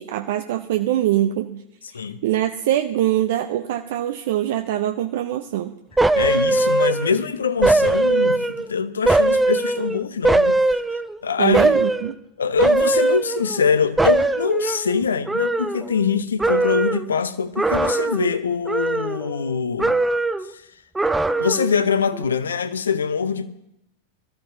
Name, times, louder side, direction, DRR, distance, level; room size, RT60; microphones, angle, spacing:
voice 1, 0.0-1.6 1.9-5.7 11.4-12.2, right 12 dB, 55° right, 0.6 m, -23 dB
sound 1, 6.0-7.2 7.6-8.7 9.1-11.2 11.5-12.1 12.6-13.7 14.0-16.1 16.4-17.1 17.5-18.4 18.7-19.5 19.8-20.5 20.9-21.8 22.1-22.2, right 2 dB, 5° right, 0.5 m, -20 dB
voice 2, 6.1-10.6 10.9-11.6 12.4-20.0 20.5-20.7 21.4-23.5, left 6 dB, 70° left, 0.8 m, -23 dB
22.0 x 14.0 x 2.7 m
figure-of-eight pair, 90°, 0 cm